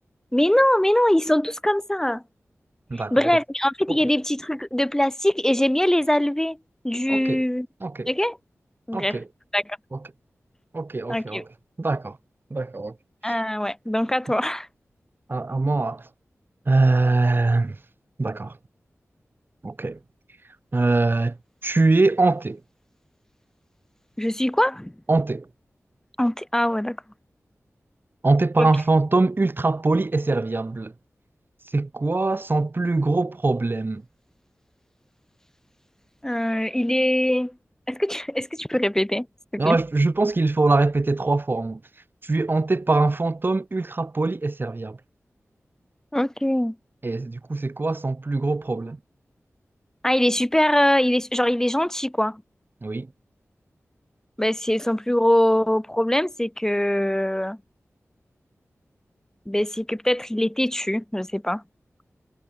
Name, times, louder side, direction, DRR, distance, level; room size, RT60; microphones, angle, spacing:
voice 1, 0.3-2.2 2.9-6.6 6.8-7.7 8.1-8.4 8.9-9.2 9.5-9.8 11.1-11.4 13.2-14.7 24.2-24.9 26.2-27.0 28.6-28.7 36.2-37.5 37.9-39.3 39.5-39.8 46.1-46.7 50.0-52.4 54.4-57.6 59.5-61.6, left 1 dB, 10° left, 3.2 m, -22 dB
voice 2, 2.9-3.3 3.9-4.0 7.1-7.4 7.8-8.1 8.9-9.2 9.9-10.0 10.7-11.5 11.8-12.2 12.5-12.9 15.3-16.1 16.7-17.8 18.2-18.5 19.6-20.0 20.7-21.4 21.6-22.6 25.1-25.5 28.2-30.9 31.7-34.0 39.6-41.8 42.2-45.0 47.0-49.0 52.8-53.1, right 3 dB, 45° right, 3.0 m, -22 dB
wide cardioid pair, 70°, 5 cm